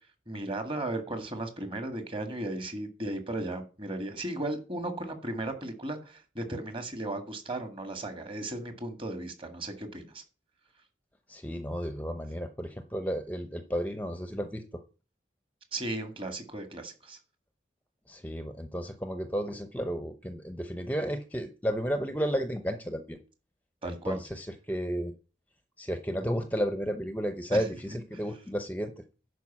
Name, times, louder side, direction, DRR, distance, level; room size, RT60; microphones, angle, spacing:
voice 1, 0.3-10.2 15.7-17.2 23.8-24.2 27.5-27.6 28.1-28.2, right 2 dB, 30° right, 7 dB, 1.9 m, -36 dB
voice 2, 11.3-14.6 18.1-23.2 23.8-25.1 25.8-28.9, equal, 10° left, 8 dB, 0.7 m, -32 dB
11.0 x 5.0 x 7.3 m, 0.34 s
head